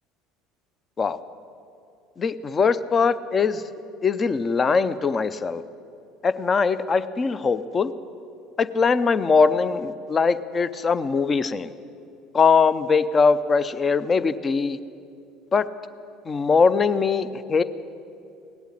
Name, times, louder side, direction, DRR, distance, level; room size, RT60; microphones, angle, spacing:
voice 1, 2.2-3.6 4.0-5.6 6.2-7.9 8.6-11.7 12.3-14.8 15.5-15.7 16.2-17.6, left 5 dB, 35° left, 15 dB, 0.6 m, -21 dB
17.5 x 8.2 x 9.8 m, 2.6 s
hypercardioid pair, 70°, 0 cm